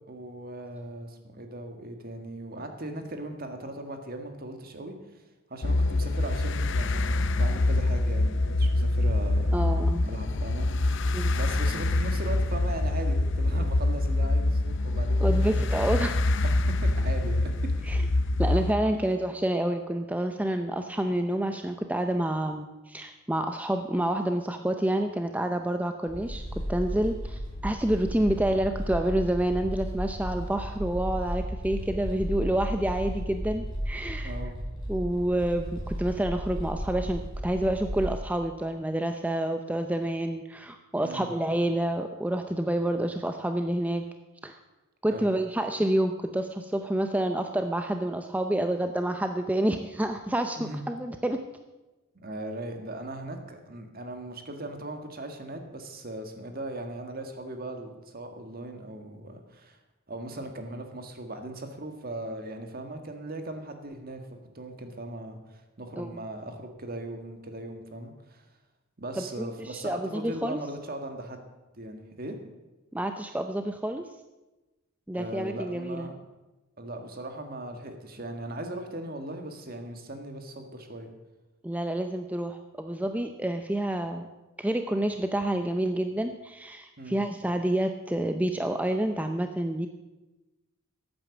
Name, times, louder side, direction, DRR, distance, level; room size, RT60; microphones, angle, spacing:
voice 1, 0.1-5.2 5.5-9.5 10.0-11.0 11.3-15.7 16.5-17.5 17.8-17.9 34.2-34.6 41.0-41.3 45.1-45.3 50.6-50.9 52.1-59.8 60.1-64.2 64.5-68.4 69.0-71.5 71.7-72.4 75.1-76.1 76.8-81.1 87.0-87.2, right 1 dB, 45° right, 6 dB, 1.7 m, -38 dB
sound 1, 5.6-18.7, left 2 dB, 60° left, 0.6 m, -25 dB
voice 2, 9.5-10.0 11.1-11.4 15.2-16.2 17.9-18.0 18.4-26.4 26.7-34.4 34.9-44.0 44.4-44.6 45.0-51.4 66.0-66.2 69.2-70.6 72.9-74.1 75.1-76.1 81.6-84.3 84.6-89.9, right 1 dB, 5° right, 6 dB, 0.5 m, -28 dB
sound 2, 26.1-38.1, equal, 20° left, 5.2 m, -34 dB
13.5 x 8.8 x 7.1 m, 1.1 s
head